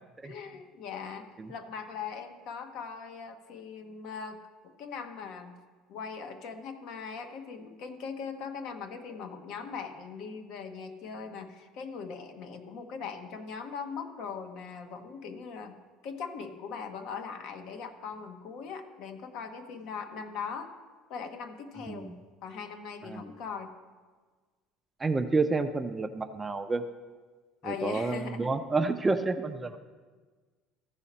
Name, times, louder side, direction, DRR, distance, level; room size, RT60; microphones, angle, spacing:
voice 1, 0.2-5.6 5.9-15.8 16.0-20.7 21.1-22.1 22.4-23.7 27.6-28.5, left 6 dB, 60° left, 7 dB, 0.9 m, -40 dB
voice 2, 21.9-22.2 23.0-23.4 25.0-26.8 27.6-29.8, right 3 dB, 15° right, 8 dB, 0.4 m, -29 dB
14.5 x 4.9 x 4.3 m, 1.4 s
cardioid pair, 135°, 0 cm